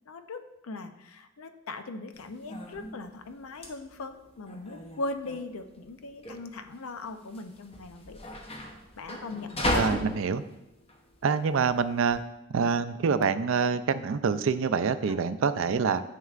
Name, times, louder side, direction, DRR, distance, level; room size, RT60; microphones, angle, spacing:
voice 1, 0.1-8.2 9.0-9.7, left 2 dB, 75° left, 8 dB, 0.6 m, -39 dB
sound 1, 2.1-12.2, left 1 dB, 25° left, 0.8 m, -36 dB
voice 2, 9.7-10.4 11.2-12.2 12.5-16.0, right 5 dB, 60° right, 12 dB, 0.4 m, -26 dB
9.3 x 6.6 x 2.4 m, 0.91 s
head